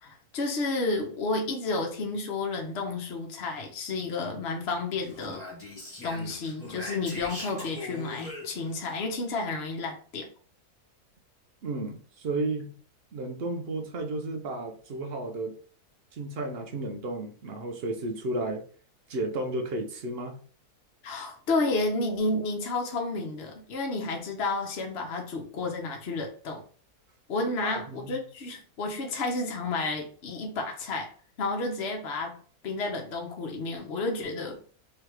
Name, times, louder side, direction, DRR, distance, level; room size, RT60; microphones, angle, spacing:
voice 1, 0.0-5.4 6.0-10.3 21.0-26.6 27.3-31.1 31.4-32.4 32.6-34.6, left 3 dB, 50° left, 1.0 m, -31 dB
Speech, 5.0-8.9, left 2 dB, 30° left, 1.3 m, -41 dB
voice 2, 11.6-12.7 13.1-15.6 16.1-18.6 19.1-20.4 27.6-28.2, right 2 dB, 55° right, 0.7 m, -33 dB
3.2 x 2.8 x 4.6 m
omnidirectional pair, 1.6 m